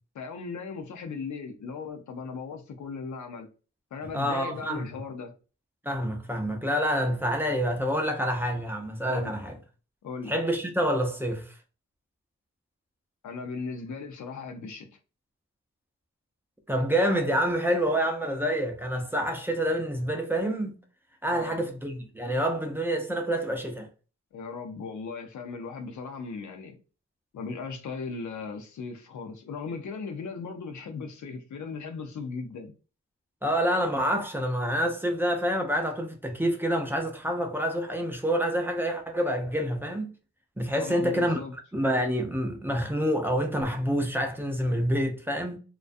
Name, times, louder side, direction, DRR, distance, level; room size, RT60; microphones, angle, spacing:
voice 1, 0.1-3.5 3.9-5.3 9.1-9.4 10.0-10.3 13.2-14.9 21.3-21.6 24.3-26.8 27.3-32.7 40.7-41.6, left 4 dB, 75° left, 0.6 m, -37 dB
voice 2, 4.1-4.9 5.8-9.6 10.3-11.5 16.7-20.7 21.2-23.9 33.4-40.1 40.6-41.4 41.7-45.6, equal, 5° right, 0.4 m, -27 dB
2.3 x 2.2 x 2.5 m
wide cardioid pair, 115°, 29 cm